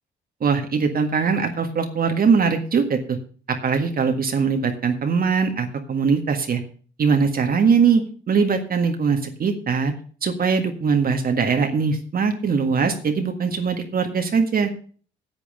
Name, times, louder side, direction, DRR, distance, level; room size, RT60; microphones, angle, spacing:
voice 1, 0.4-3.2 3.5-6.6 7.0-9.9 10.2-14.7, right 5 dB, 50° right, 4 dB, 1.7 m, -21 dB
9.1 x 8.4 x 6.5 m, 0.43 s
cardioid pair, 90°, 20 cm